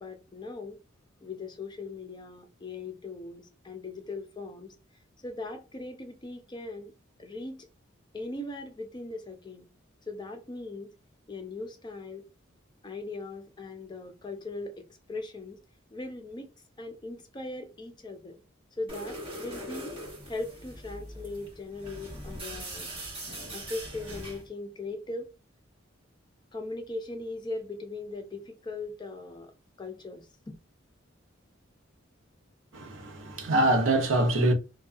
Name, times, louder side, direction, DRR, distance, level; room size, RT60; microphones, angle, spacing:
voice 1, 0.0-0.8 1.2-4.8 5.2-6.9 7.2-7.7 8.1-9.7 10.1-10.9 11.3-12.2 12.8-14.7 15.1-15.6 15.9-16.5 16.8-18.3 18.8-19.9 20.3-22.9 23.5-25.3 26.5-29.5 29.8-30.5, left 2 dB, 20° left, 0.4 m, -39 dB
sound 1, 18.9-24.5, right 1 dB, 25° right, 1.4 m, -41 dB
voice 2, 32.7-34.5, right 1 dB, 80° right, 0.7 m, -24 dB
2.6 x 2.2 x 2.4 m
head